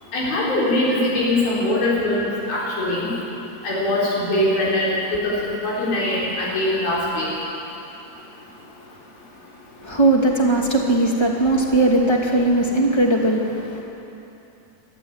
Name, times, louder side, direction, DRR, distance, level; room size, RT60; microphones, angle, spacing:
voice 1, 0.1-3.1 3.6-4.9 5.2-7.3, left 1 dB, 85° left, -6 dB, 6.3 m, -22 dB
voice 2, 9.8-13.8, right 2 dB, 10° left, -1 dB, 1.6 m, -19 dB
24.0 x 13.5 x 8.9 m, 2.9 s
omnidirectional pair, 4.1 m